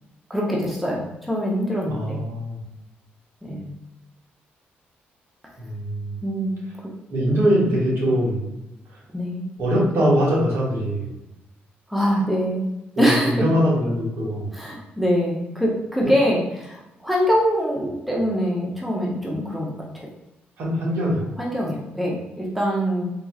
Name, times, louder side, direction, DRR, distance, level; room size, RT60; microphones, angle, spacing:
voice 1, 0.3-2.2 3.4-3.7 6.2-6.6 9.1-9.4 11.9-12.7 13.0-13.4 14.5-20.1 21.4-23.1, equal, ahead, -3 dB, 0.7 m, -24 dB
voice 2, 1.9-2.6 5.6-6.2 7.1-8.5 9.6-11.1 13.0-14.6 20.6-21.3, equal, 70° right, -4 dB, 1.4 m, -22 dB
3.7 x 2.9 x 2.3 m, 0.91 s
cardioid pair, 100°, 4 cm